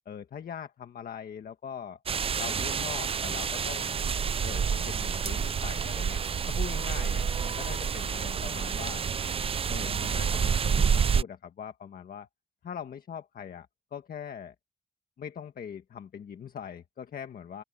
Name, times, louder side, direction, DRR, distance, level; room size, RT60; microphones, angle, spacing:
voice 1, 0.0-2.0 2.4-3.9 4.4-6.2 6.5-9.0 9.7-12.3 12.6-14.5 15.2-17.6, left 8 dB, 55° left, 1.5 m, -41 dB
sound 1, 2.1-11.2, right 6 dB, 35° right, 0.5 m, -28 dB
open air
wide cardioid pair, 140°, 18 cm